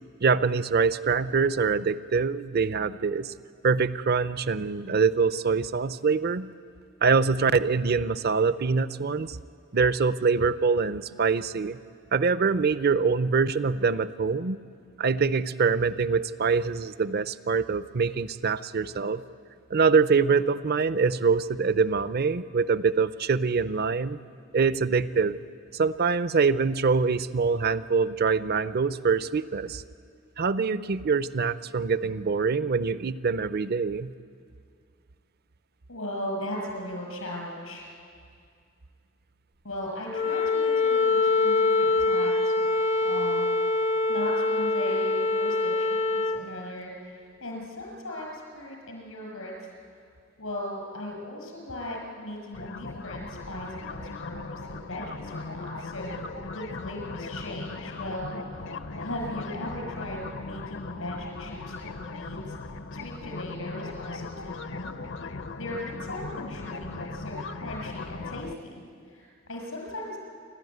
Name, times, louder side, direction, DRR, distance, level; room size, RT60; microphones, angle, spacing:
voice 1, 0.2-3.3 3.6-6.5 7.0-9.4 9.7-11.8 12.1-14.6 15.0-19.2 19.7-24.2 24.5-25.4 25.7-29.8 30.4-34.1, right 5 dB, 50° right, 16 dB, 0.6 m, -24 dB
voice 2, 35.9-37.9 39.6-42.7 43.0-43.6 44.1-49.5 50.4-56.2 56.5-58.3 59.0-62.4 62.9-65.0 65.6-68.8 69.1-70.2, left 1 dB, 90° left, 0 dB, 6.4 m, -38 dB
Wind instrument woodwind instrument, 40.1-46.4, left 3 dB, 30° left, 0.5 m, -24 dB
sound 1, 52.5-68.5, left 3 dB, 65° left, 0.8 m, -38 dB
28.5 x 12.5 x 9.5 m, 2.2 s
head